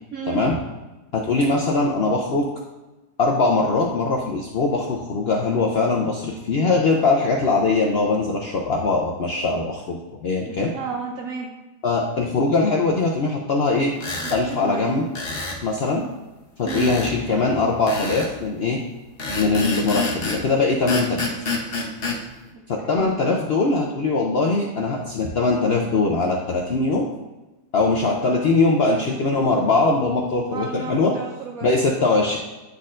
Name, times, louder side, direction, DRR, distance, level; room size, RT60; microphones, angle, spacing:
voice 1, 1.1-2.5 3.2-10.7 11.8-13.9 14.3-15.0 15.6-16.0 16.6-18.8 19.4-21.3 22.7-27.1 27.7-31.1 31.6-32.4, left 3 dB, 65° left, -1 dB, 0.6 m, -21 dB
voice 2, 10.4-11.5 14.2-15.0 16.6-16.9 22.8-23.1 30.5-31.7, right 5 dB, 65° right, 0 dB, 1.0 m, -32 dB
sound 1, 14.0-14.4 15.1-15.6 16.7-17.1 17.9-18.3 19.2-20.4 20.9-22.2, left 3 dB, 45° left, 0.9 m, -27 dB
9.3 x 4.2 x 2.5 m, 1.1 s
omnidirectional pair, 1.8 m